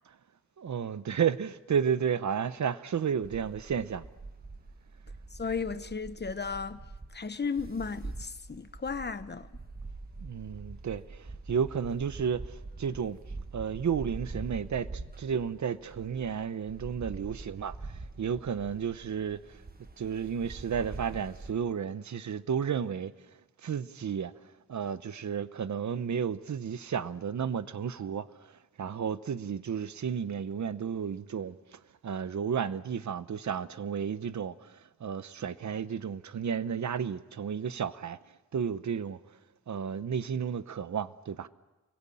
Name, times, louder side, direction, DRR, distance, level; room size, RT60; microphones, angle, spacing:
voice 1, 0.6-4.1 10.2-13.2 13.5-19.6 20.0-23.1 23.6-24.3 24.7-38.2 38.5-39.4 39.7-41.5, right 7 dB, 70° right, 0.9 m, -32 dB
sound 1, 3.2-21.5, right 3 dB, 30° right, 1.5 m, -44 dB
voice 2, 5.3-6.8 7.1-9.5, left 5 dB, 35° left, 1.1 m, -34 dB
29.5 x 22.5 x 8.6 m
wide cardioid pair, 140°, 30 cm